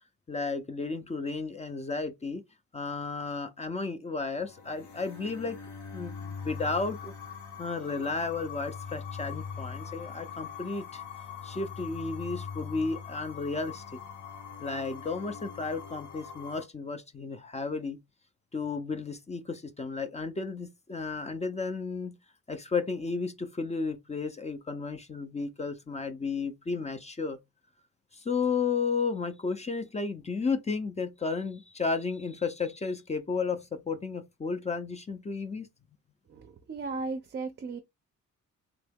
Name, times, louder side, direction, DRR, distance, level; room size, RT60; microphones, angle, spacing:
voice 1, 0.3-2.4 2.7-5.6 5.9-7.1 7.6-11.0 11.4-13.8 14.6-18.0 18.5-22.1 22.5-27.4 28.1-35.7, left 4 dB, 20° left, 0.4 m, -33 dB
sound 1, 4.3-16.6, left 6 dB, 70° left, 1.1 m, -42 dB
voice 2, 36.3-37.8, right 4 dB, 35° right, 0.4 m, -36 dB
3.0 x 2.7 x 3.5 m
cardioid pair, 95°, 31 cm